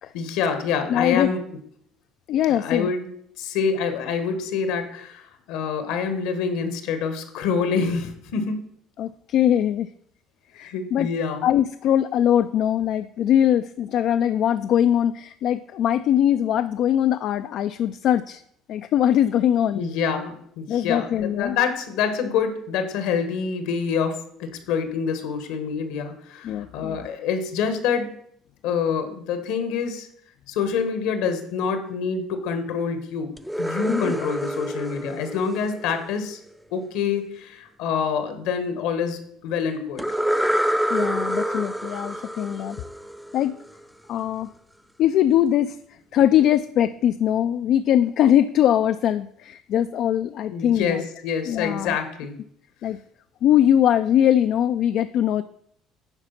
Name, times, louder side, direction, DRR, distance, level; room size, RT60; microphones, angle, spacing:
voice 1, 0.1-1.4 2.5-3.1 3.4-8.6 10.5-11.5 19.7-28.1 28.6-30.1 30.5-36.4 36.7-40.0 50.5-52.4, left 6 dB, 80° left, 8 dB, 1.4 m, -26 dB
voice 2, 0.9-1.3 2.3-2.9 9.0-9.9 10.6-11.1 11.4-18.4 18.7-19.8 20.7-21.6 26.4-27.0 33.9-34.1 40.9-42.8 43.3-43.6 44.1-44.5 45.0-45.8 46.1-51.0 51.5-52.0 52.8-53.0 53.4-55.4, left 10 dB, 65° left, 11 dB, 0.3 m, -21 dB
sound 1, 33.4-36.3 40.0-43.7, equal, ahead, 0.5 m, -27 dB
9.8 x 4.8 x 5.8 m, 0.69 s
supercardioid pair, 85°, 0 cm